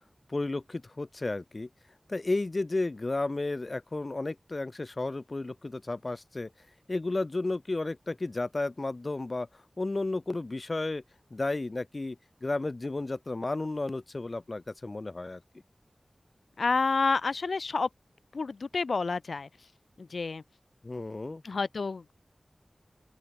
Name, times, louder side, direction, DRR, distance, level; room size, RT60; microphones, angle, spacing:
voice 1, 0.3-1.7 2.1-6.5 6.9-11.0 11.3-15.4 20.8-21.4, left 2 dB, 45° left, 0.6 m, -33 dB
voice 2, 16.6-17.9 18.3-19.5 20.0-20.4 21.4-22.1, left 4 dB, 85° left, 1.0 m, -29 dB
open air
wide cardioid pair, 80°, 0 cm